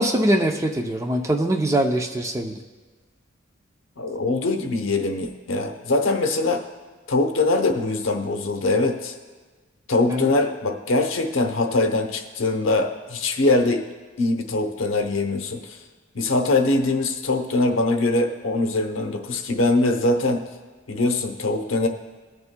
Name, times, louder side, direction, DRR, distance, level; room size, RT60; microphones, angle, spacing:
voice 1, 0.0-2.6 10.1-10.3, right 1 dB, 15° right, 3 dB, 0.5 m, -22 dB
voice 2, 4.0-6.6 7.1-9.1 9.9-13.9 14.2-15.8 16.1-20.5 20.9-21.9, left 2 dB, 75° left, 5 dB, 0.8 m, -22 dB
20.5 x 6.9 x 2.2 m, 1.4 s
head